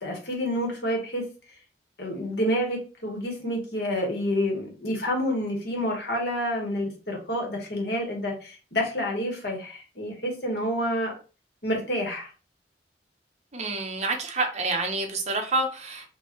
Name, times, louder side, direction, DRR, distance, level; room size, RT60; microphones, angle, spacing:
voice 1, 0.0-1.2 2.0-11.1 11.6-12.3, equal, 70° left, 1 dB, 1.6 m, -28 dB
voice 2, 13.5-16.1, right 2 dB, 40° right, 4 dB, 0.8 m, -28 dB
4.8 x 2.7 x 3.1 m, 0.35 s
head